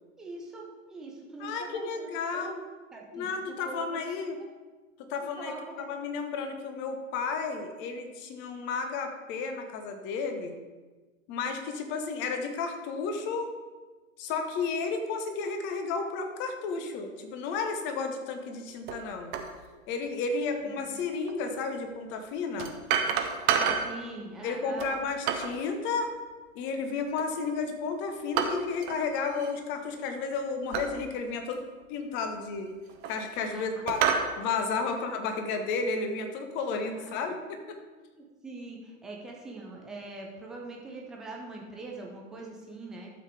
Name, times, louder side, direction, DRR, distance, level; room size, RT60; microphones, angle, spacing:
voice 1, 0.2-2.6 2.9-3.3 3.6-4.3 5.4-5.9 20.6-21.0 23.4-24.9 33.5-33.8 34.9-35.0 36.9-37.2 38.2-43.1, right 2 dB, ahead, -1 dB, 0.4 m, -43 dB
voice 2, 1.4-2.6 3.1-4.4 5.1-10.5 11.3-13.5 14.2-19.3 19.9-22.7 24.4-26.1 26.5-31.6 31.9-32.7 33.1-34.0 34.4-37.8, left 4 dB, 25° left, 5 dB, 1.3 m, -32 dB
sound 1, 18.9-19.0 19.3-19.5 21.3-21.4 22.6-24.0 24.8-25.6 27.2-27.6 28.4-29.0 29.3-29.5 30.7-30.9 31.5-31.6 32.6-33.4 33.9-34.3, right 7 dB, 25° right, 0.8 m, -29 dB
12.5 x 7.4 x 3.5 m, 1.3 s
figure-of-eight pair, 105°, 41 cm